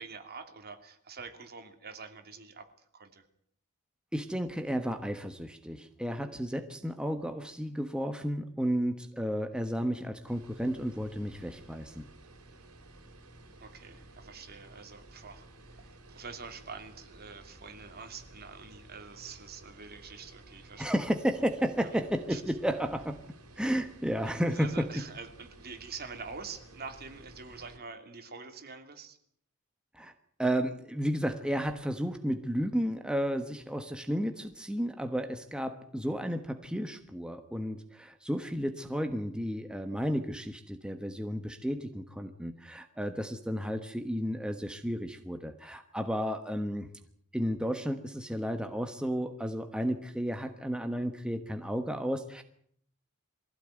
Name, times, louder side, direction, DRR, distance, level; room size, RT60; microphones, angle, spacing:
voice 1, 0.0-3.3 13.6-20.8 21.9-22.0 22.3-22.4 24.4-29.2, right 5 dB, 45° right, 6 dB, 2.9 m, -46 dB
voice 2, 4.1-12.1 20.8-23.2 23.6-25.1 29.9-30.1 30.4-46.9 47.3-52.4, equal, 5° right, 6 dB, 1.2 m, -32 dB
sound 1, 10.3-27.8, right 2 dB, 75° right, 4.0 m, -54 dB
23.0 x 16.0 x 9.2 m, 0.66 s
head